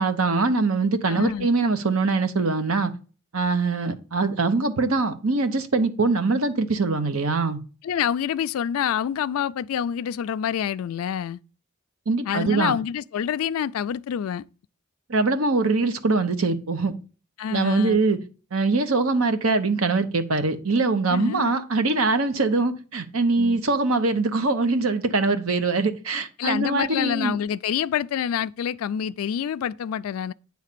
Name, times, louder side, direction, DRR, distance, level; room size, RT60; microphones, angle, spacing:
voice 1, 0.0-2.9 3.3-7.6 12.1-12.7 15.1-16.9 17.5-18.2 18.5-27.4, right 3 dB, 75° right, 1.0 m, -23 dB
voice 2, 1.1-1.5 7.8-11.4 12.3-14.4 17.4-18.0 21.1-21.5 23.4-23.6 26.4-30.3, left 8 dB, 80° left, 0.3 m, -27 dB
9.5 x 3.3 x 6.7 m
head